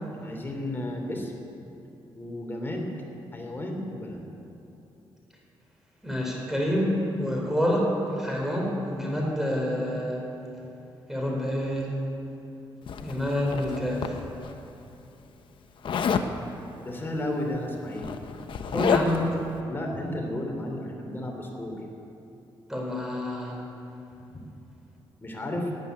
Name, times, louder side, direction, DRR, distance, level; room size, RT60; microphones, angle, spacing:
voice 1, 0.2-1.3 2.1-2.9 3.3-4.3 16.8-18.1 19.7-21.8 25.2-25.7, left 1 dB, 25° left, 1 dB, 2.9 m, -33 dB
voice 2, 6.0-10.3 11.1-12.0 13.0-14.2 18.7-19.4 22.7-23.6, equal, 5° right, -2 dB, 4.0 m, -27 dB
Zipper (clothing), 12.9-14.5 15.8-16.3 17.5-17.6 17.9-19.3, left 6 dB, 65° left, 0.9 m, -29 dB
13.5 x 9.2 x 9.6 m, 2.9 s
cardioid pair, 105°, 9 cm